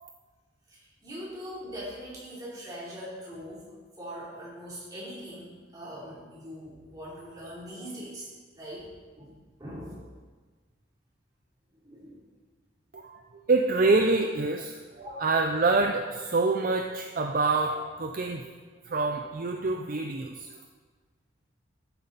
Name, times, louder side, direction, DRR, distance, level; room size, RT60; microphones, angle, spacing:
voice 1, 0.7-3.7 4.0-8.3 8.5-8.9 9.2-10.0 11.8-12.2 15.0-15.3, equal, 20° right, -7 dB, 3.0 m, -41 dB
voice 2, 13.5-14.8 15.2-18.5 18.9-20.5, right 3 dB, 45° right, 4 dB, 0.5 m, -26 dB
11.5 x 8.9 x 4.0 m, 1.4 s
head